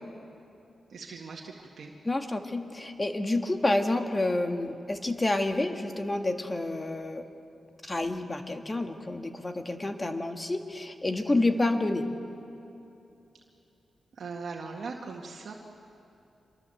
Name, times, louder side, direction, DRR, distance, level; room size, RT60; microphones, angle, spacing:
voice 1, 0.9-1.9 14.2-15.5, right 4 dB, 70° right, 0 dB, 1.9 m, -40 dB
voice 2, 2.0-7.3 7.8-12.1, left 2 dB, 25° left, 6 dB, 1.7 m, -29 dB
25.5 x 22.5 x 7.8 m, 2.8 s
cardioid pair, 80°, 0 cm